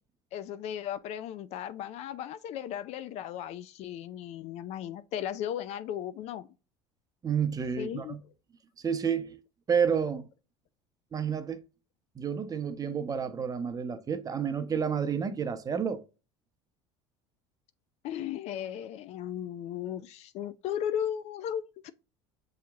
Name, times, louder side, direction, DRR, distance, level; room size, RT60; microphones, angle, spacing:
voice 1, 0.3-6.5 7.8-8.2 18.0-21.9, left 10 dB, 55° left, 0.4 m, -36 dB
voice 2, 7.2-8.2 8.8-9.4 9.7-10.3 11.1-11.6 12.2-16.0, right 7 dB, 25° right, 0.7 m, -30 dB
6.3 x 2.8 x 2.3 m
supercardioid pair, 85°, 13 cm